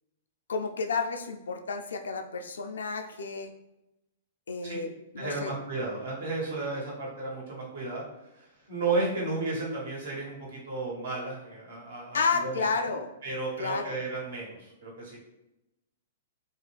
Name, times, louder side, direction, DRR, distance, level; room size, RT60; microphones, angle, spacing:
voice 1, 0.5-3.5 4.5-5.5 12.1-13.1 13.6-14.0, left 4 dB, 80° left, 5 dB, 0.4 m, -31 dB
voice 2, 5.2-12.7 13.2-15.2, right 3 dB, 70° right, -4 dB, 1.3 m, -33 dB
2.5 x 2.2 x 3.3 m, 0.94 s
hypercardioid pair, 120°, 0 cm